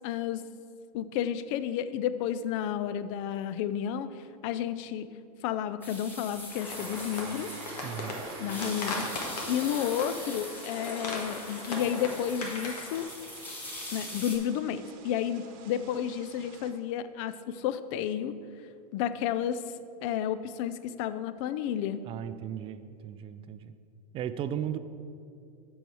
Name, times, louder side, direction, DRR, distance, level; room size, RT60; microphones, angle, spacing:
voice 1, 0.0-0.4 0.9-5.1 5.4-7.5 8.4-9.1 9.5-13.1 13.9-18.3 18.9-19.7 20.0-22.1, left 9 dB, 50° left, 13 dB, 0.4 m, -31 dB
sound 1, 5.8-14.4, left 1 dB, 10° left, 2.2 m, -42 dB
sound 2, 6.5-13.0, left 2 dB, 75° left, 1.7 m, -38 dB
sound 3, 6.7-16.7, right 5 dB, 55° right, 1.0 m, -49 dB
voice 2, 7.8-8.2 22.0-23.7 24.1-24.8, right 9 dB, 25° right, 11 dB, 0.4 m, -36 dB
7.7 x 6.3 x 4.6 m, 2.4 s
hypercardioid pair, 105°, 21 cm